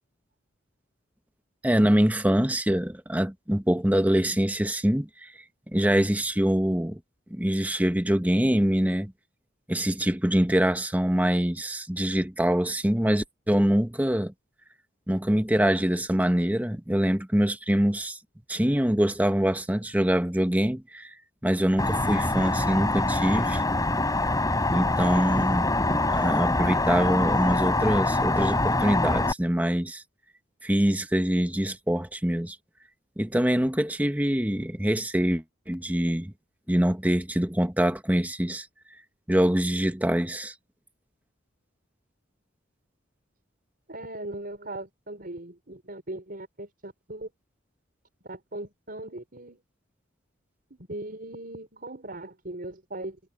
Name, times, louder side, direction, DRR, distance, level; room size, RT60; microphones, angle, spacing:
voice 1, 1.6-5.3 5.7-7.0 7.3-9.1 9.7-14.3 15.1-18.2 18.5-21.1 21.4-23.6 24.7-25.7 26.1-30.0 30.6-32.6 33.2-36.3 36.7-38.7 39.3-40.5, equal, 10° right, 1.1 m, -24 dB
sound 1, 21.8-29.3, left 2 dB, 20° left, 4.1 m, -24 dB
voice 2, 43.9-47.3 48.2-49.6 50.7-53.2, right 1 dB, 50° right, 5.2 m, -39 dB
head